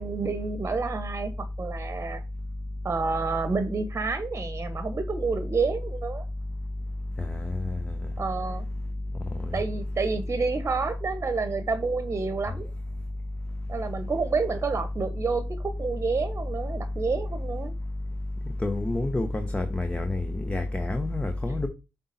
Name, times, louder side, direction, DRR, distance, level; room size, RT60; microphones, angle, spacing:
voice 1, 0.0-1.3 1.6-2.2 2.8-6.2 8.2-8.7 9.5-12.7 13.7-15.4 15.8-17.7, right 4 dB, 35° right, 1.1 m, -29 dB
voice 2, 7.2-7.9 9.4-9.6 18.6-21.7, left 2 dB, 15° left, 1.1 m, -28 dB
7.4 x 4.2 x 4.2 m
hypercardioid pair, 50°, 7 cm